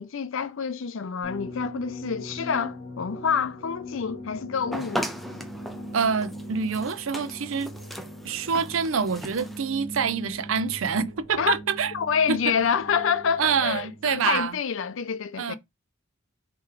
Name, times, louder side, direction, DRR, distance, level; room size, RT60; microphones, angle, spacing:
voice 1, 0.0-5.1 11.4-11.5 11.9-15.6, left 6 dB, 65° left, 0.5 m, -27 dB
sound 1, 1.2-14.5, equal, 25° left, 3.0 m, -41 dB
sound 2, 4.7-9.7, equal, ahead, 0.5 m, -37 dB
voice 2, 5.9-7.7 8.2-11.9 12.3-12.4 13.4-14.6 15.4-15.6, right 6 dB, 70° right, 0.5 m, -26 dB
4.6 x 3.0 x 3.7 m
head